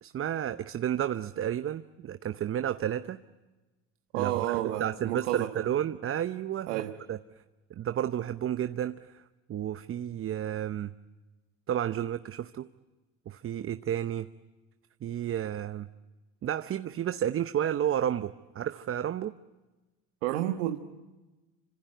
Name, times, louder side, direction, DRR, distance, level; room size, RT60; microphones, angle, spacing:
voice 1, 0.0-3.2 4.1-7.2 7.8-9.2 9.5-10.9 11.7-12.7 13.3-14.3 15.0-15.9 16.4-19.3, right 10 dB, 35° right, 0.8 m, -31 dB
voice 2, 4.1-5.7 6.7-7.0 20.2-20.8, right 14 dB, 80° right, 1.3 m, -31 dB
27.0 x 26.0 x 7.9 m
hypercardioid pair, 80°, 36 cm